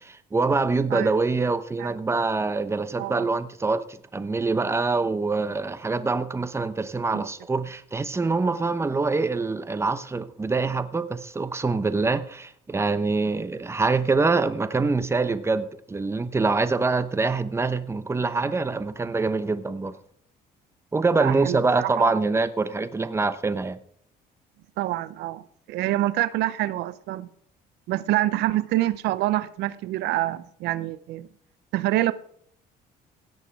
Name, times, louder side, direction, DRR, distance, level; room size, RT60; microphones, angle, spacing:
voice 1, 0.0-20.0 20.9-23.8, right 3 dB, 15° right, 0.9 m, -25 dB
voice 2, 21.2-22.2 24.8-27.3 27.9-31.3 31.7-32.1, right 15 dB, 85° right, 0.6 m, -26 dB
17.0 x 8.2 x 4.7 m
cardioid pair, 110°, 17 cm